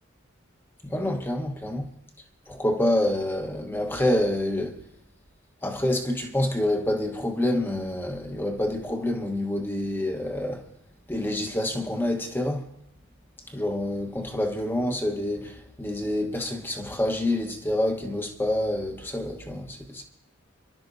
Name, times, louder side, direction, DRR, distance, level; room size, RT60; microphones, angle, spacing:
voice 1, 0.8-1.9 2.5-4.8 5.6-10.6 11.1-12.6 13.5-20.0, left 1 dB, 10° left, 1.2 m, -27 dB
28.0 x 12.0 x 2.7 m
head